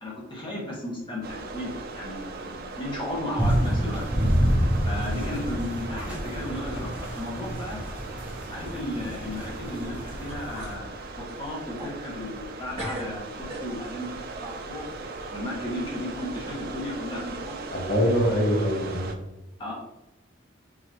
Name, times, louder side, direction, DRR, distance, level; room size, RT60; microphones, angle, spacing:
voice 1, 0.0-4.0 4.8-7.8 8.5-14.1 14.4-14.9 15.3-17.6 19.6-19.7, left 1 dB, 25° left, -4 dB, 1.4 m, -34 dB
sound 1, 1.2-19.1, right 3 dB, 50° right, 0.5 m, -39 dB
sound 2, 2.2-3.0 3.3-3.8 4.2-4.3 5.2-5.3 6.0-6.1 6.5-6.9 7.2-7.3 9.8-9.9 10.3-10.8 11.2-12.5 12.7-14.0, right 1 dB, 30° right, 1.5 m, -41 dB
sound 3, 3.4-10.8, equal, 5° right, 0.8 m, -28 dB
voice 2, 17.7-19.1, equal, 45° left, -2 dB, 1.2 m, -23 dB
4.9 x 3.1 x 2.9 m, 0.96 s
head